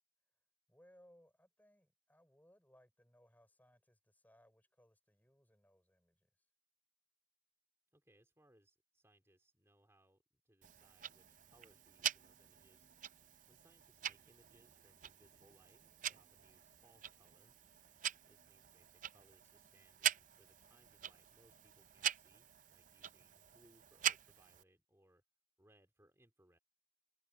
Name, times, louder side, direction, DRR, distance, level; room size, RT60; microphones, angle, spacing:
voice 1, 0.7-6.5 23.2-23.6, equal, 10° left, 5.8 m, -68 dB
voice 2, 7.9-12.9 13.5-17.6 18.3-25.2 25.6-26.6, right 1 dB, 15° right, 3.5 m, -71 dB
Tick-tock, 10.6-24.6, right 10 dB, 45° right, 0.6 m, -44 dB
head